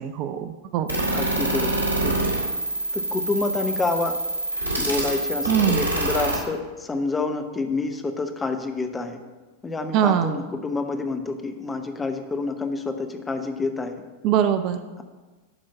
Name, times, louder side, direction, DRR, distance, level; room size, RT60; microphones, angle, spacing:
voice 1, 0.0-0.9 5.5-5.8 9.9-10.3 14.2-14.8, right 9 dB, 40° right, 10 dB, 0.5 m, -22 dB
sound 1, 0.9-6.4, right 2 dB, 90° left, 2.4 m, -26 dB
voice 2, 1.1-1.7 2.0-2.2 2.9-4.2 4.8-9.2 9.6-13.9, left 3 dB, 15° left, 6 dB, 0.9 m, -28 dB
11.5 x 4.6 x 5.9 m, 1.3 s
figure-of-eight pair, 90°, 0 cm